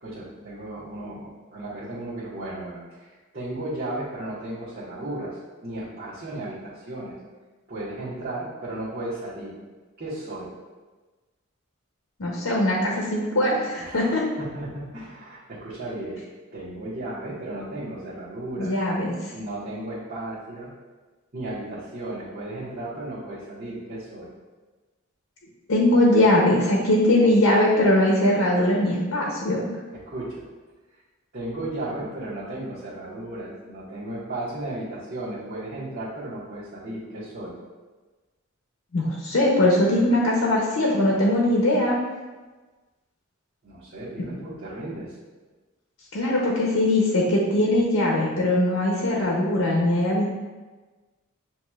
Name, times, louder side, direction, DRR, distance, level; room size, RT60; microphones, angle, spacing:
voice 1, 0.0-5.4 5.6-7.1 7.7-9.6 10.0-10.5 13.8-14.1 14.4-16.2 16.5-18.9 19.3-20.7 21.3-24.3 30.1-30.4 31.3-37.5 43.6-45.1, right 1 dB, 50° right, -12 dB, 1.2 m, -35 dB
voice 2, 12.2-14.2 18.6-19.1 25.7-29.7 38.9-42.0 46.1-50.3, left 1 dB, 90° left, -3 dB, 0.7 m, -21 dB
7.3 x 2.9 x 2.4 m, 1.3 s
head